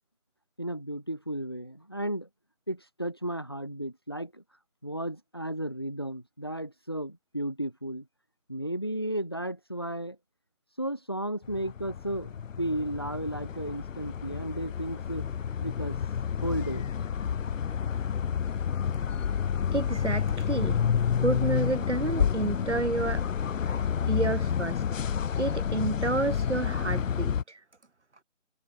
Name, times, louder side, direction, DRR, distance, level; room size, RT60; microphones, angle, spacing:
voice 1, 0.6-2.3 2.7-4.4 4.8-8.0 8.5-10.2 10.8-12.3 12.6-15.3 15.6-16.0 16.4-16.9, right 1 dB, 20° left, 1.2 m, -34 dB
sound 1, 11.4-27.4, left 7 dB, 85° left, 0.6 m, -29 dB
voice 2, 19.7-20.8 21.2-23.2 23.6-24.8 25.4-27.6, right 3 dB, 65° right, 3.0 m, -30 dB
figure-of-eight pair, 180°, 37 cm